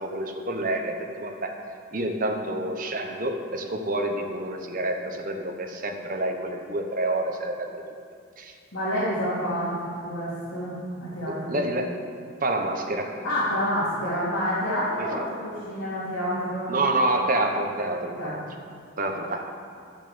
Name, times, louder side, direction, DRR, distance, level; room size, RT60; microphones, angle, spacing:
voice 1, 0.0-1.5 1.9-7.7 8.4-8.5 11.3-12.0 12.4-13.2 15.0-15.1 16.7-18.4 19.0-19.4, right 1 dB, 40° right, 3 dB, 1.1 m, -28 dB
voice 2, 8.7-11.6 13.2-16.8 18.2-18.3, equal, 70° left, -12 dB, 3.5 m, -28 dB
12.5 x 7.0 x 7.1 m, 2.3 s
head